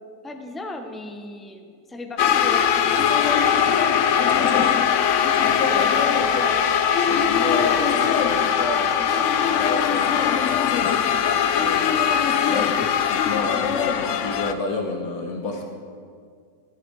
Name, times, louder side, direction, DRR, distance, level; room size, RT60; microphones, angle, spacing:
voice 1, 0.2-3.1 3.4-3.9 4.2-4.9 5.7-6.6 10.8-11.1, left 1 dB, ahead, 4 dB, 0.8 m, -36 dB
sound 1, 2.2-14.5, left 8 dB, 60° left, 1.0 m, -20 dB
voice 2, 5.4-5.9 6.3-6.4 7.1-12.0 12.5-15.6, left 3 dB, 80° left, 2 dB, 1.8 m, -31 dB
15.5 x 14.5 x 4.8 m, 2.1 s
omnidirectional pair, 1.6 m